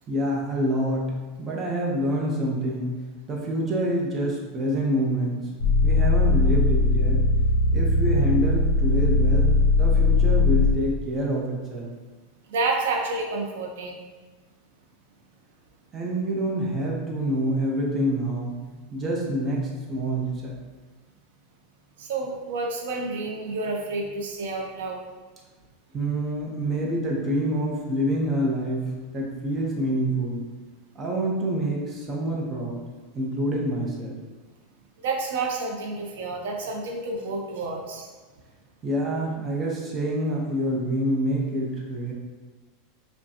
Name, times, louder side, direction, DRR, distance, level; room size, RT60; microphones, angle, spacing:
voice 1, 0.1-3.0 3.3-5.5 5.8-7.2 7.7-11.9 15.9-18.5 18.9-20.6 25.9-28.9 29.1-30.4 30.9-32.8 33.1-34.1 38.8-42.1, right 1 dB, 25° right, -3 dB, 0.8 m, -27 dB
sound 1, 5.6-10.8, left 3 dB, 75° left, 0.6 m, -20 dB
voice 2, 12.5-14.1 22.0-25.0 35.0-38.1, right 3 dB, 85° right, 1 dB, 0.6 m, -29 dB
5.1 x 2.2 x 2.8 m, 1.3 s
supercardioid pair, 140°, 0 cm